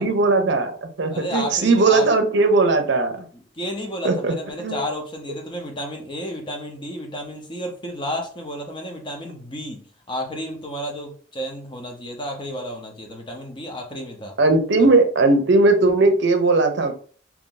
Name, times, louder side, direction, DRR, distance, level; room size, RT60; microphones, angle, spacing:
voice 1, 0.0-3.3 4.0-4.3 4.6-4.8 14.4-16.9, right 3 dB, 60° right, 6 dB, 0.6 m, -18 dB
voice 2, 1.1-2.1 3.6-14.4 14.8-14.9, equal, 25° left, 2 dB, 0.7 m, -32 dB
2.9 x 2.6 x 3.8 m, 0.43 s
head